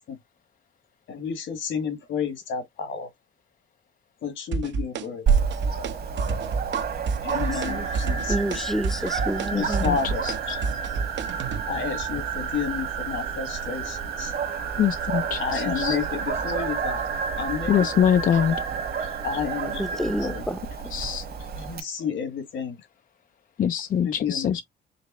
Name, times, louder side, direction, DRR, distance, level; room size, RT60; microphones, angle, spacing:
voice 1, 1.1-3.1 4.2-5.3 7.2-8.6 9.6-10.6 11.7-14.3 15.3-17.1 17.4-18.3 19.0-19.9 20.2-20.4 21.6-22.9 24.0-24.6, left 6 dB, 70° left, 1.7 m, -31 dB
sound 1, 4.5-5.0 5.3-5.9 6.2-6.8 7.1-7.7 8.0-11.6, right 4 dB, 65° right, 0.9 m, -28 dB
Dog, 5.3-21.8, right 6 dB, 50° right, 1.4 m, -31 dB
sound 2, 7.3-20.4, right 6 dB, 90° right, 1.4 m, -33 dB
voice 2, 7.5-7.9 8.3-9.9 19.7-20.9, equal, ahead, 0.6 m, -30 dB
voice 3, 9.5-10.3 14.8-16.0 17.7-18.5 20.9-21.3 23.6-24.6, left 9 dB, 45° left, 0.4 m, -24 dB
5.2 x 2.0 x 4.1 m
cardioid pair, 90°, 20 cm